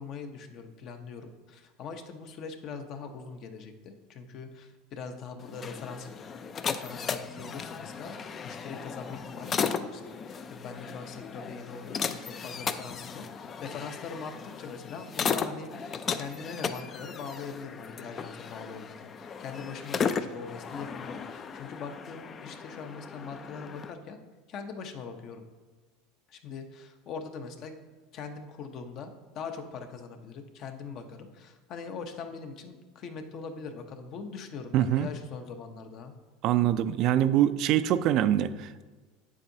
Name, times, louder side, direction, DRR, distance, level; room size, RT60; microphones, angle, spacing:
voice 1, 0.0-8.1 8.4-24.2 24.5-25.4 26.3-27.8 28.1-36.1, left 5 dB, 45° left, 7 dB, 0.7 m, -42 dB
sound 1, 5.4-23.9, left 6 dB, 30° left, 0.3 m, -36 dB
voice 2, 34.7-35.1 36.4-38.9, right 11 dB, 50° right, 12 dB, 0.3 m, -24 dB
8.3 x 7.3 x 2.7 m, 1.3 s
supercardioid pair, 130°, 0 cm